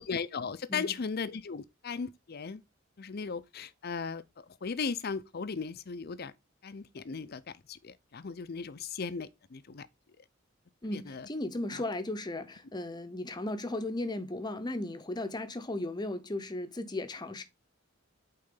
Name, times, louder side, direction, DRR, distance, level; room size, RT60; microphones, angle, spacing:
voice 1, 0.0-2.6 3.0-6.3 6.6-9.9 10.9-11.3 11.7-11.8, left 5 dB, 50° left, 0.5 m, -37 dB
voice 2, 10.8-17.4, left 2 dB, 20° left, 0.8 m, -36 dB
8.7 x 3.8 x 3.8 m
head